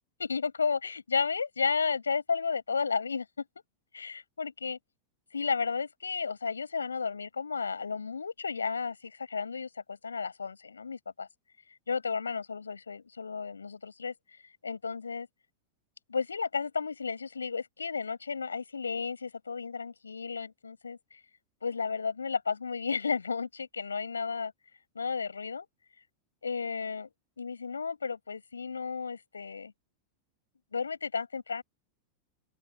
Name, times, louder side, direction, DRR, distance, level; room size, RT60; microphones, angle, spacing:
voice 1, 0.2-3.3 3.9-4.8 5.3-11.3 11.9-14.1 14.6-15.3 16.1-21.0 21.6-24.5 24.9-25.7 26.4-27.1 27.4-29.7 30.7-31.6, left 5 dB, 75° left, 6.4 m, -33 dB
open air
figure-of-eight pair, 90°, 0 cm